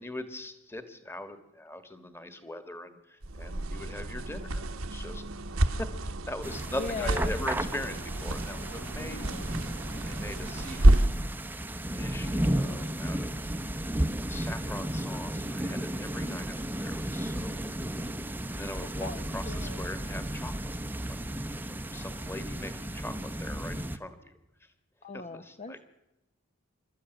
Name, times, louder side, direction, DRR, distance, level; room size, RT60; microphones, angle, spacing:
voice 1, 0.0-5.2 5.6-9.3 9.9-11.2 11.9-13.4 14.1-17.6 18.6-20.7 21.0-21.2 21.6-24.3 25.1-25.8, left 1 dB, 10° left, 10 dB, 1.5 m, -41 dB
sound 1, 3.2-11.3, right 1 dB, 70° right, 1.2 m, -28 dB
sound 2, 6.4-24.0, right 1 dB, 10° right, 0.7 m, -34 dB
voice 2, 6.8-7.3 9.0-9.5 12.2-12.9 16.3-16.5 19.0-19.9 25.0-25.8, left 3 dB, 35° left, 9 dB, 0.7 m, -40 dB
27.5 x 13.0 x 9.1 m, 0.96 s
head